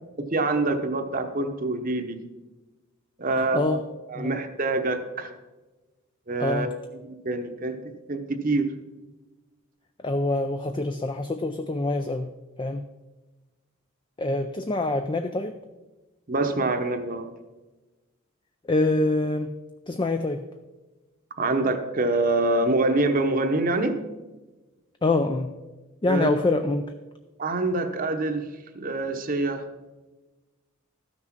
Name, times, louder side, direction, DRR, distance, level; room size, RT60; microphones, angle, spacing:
voice 1, 0.2-2.2 3.2-3.8 4.1-5.3 6.3-6.7 7.0-7.8 8.1-8.7 16.3-17.3 21.4-24.0 26.0-26.3 27.4-29.6, right 2 dB, 40° right, 7 dB, 0.9 m, -25 dB
voice 2, 3.4-3.8 4.2-4.3 6.4-6.7 10.0-12.3 12.6-12.8 14.2-15.5 18.7-19.5 19.9-20.4 25.0-25.5 26.0-26.9, left 2 dB, 20° left, 7 dB, 0.4 m, -25 dB
13.5 x 6.1 x 5.9 m, 1.2 s
head